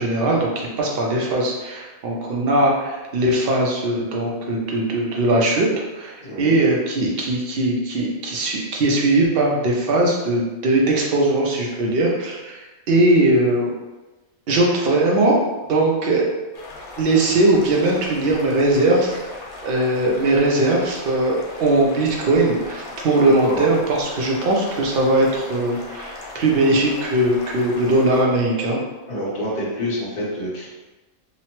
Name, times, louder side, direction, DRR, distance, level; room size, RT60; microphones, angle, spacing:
voice 1, 0.0-13.7 14.5-15.4 15.7-16.3 17.0-28.8, right 2 dB, 60° right, -2 dB, 0.6 m, -20 dB
voice 2, 6.2-6.6 23.3-23.7 29.1-30.7, equal, 40° left, -8 dB, 0.7 m, -27 dB
sound 1, 16.5-28.2, left 2 dB, 80° left, 1.1 m, -38 dB
2.9 x 2.0 x 2.9 m, 1.1 s
omnidirectional pair, 1.5 m